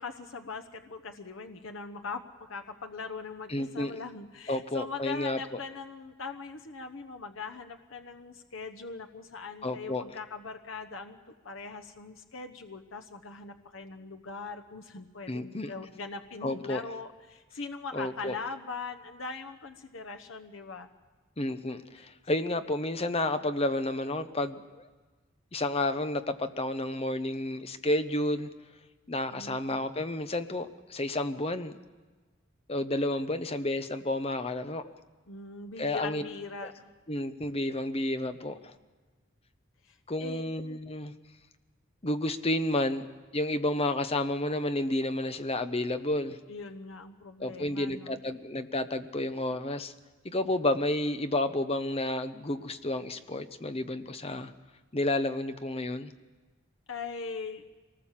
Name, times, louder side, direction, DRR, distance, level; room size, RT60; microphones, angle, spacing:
voice 1, 0.0-20.9 22.0-22.1 29.3-29.9 35.3-36.9 39.8-40.5 46.5-48.2 56.9-57.6, left 4 dB, 75° left, 5 dB, 1.0 m, -41 dB
voice 2, 3.5-4.0 4.5-5.6 9.6-10.0 15.3-15.7 16.4-16.8 17.9-18.4 21.4-24.9 25.5-28.5 29.1-31.8 32.7-34.9 35.8-36.2 36.6-36.7 37.1-38.7 40.1-41.1 42.0-43.1 43.3-46.4 47.4-49.9 50.2-54.5 54.9-56.1, left 1 dB, 30° left, 10 dB, 0.9 m, -31 dB
24.0 x 19.0 x 7.4 m, 1.3 s
head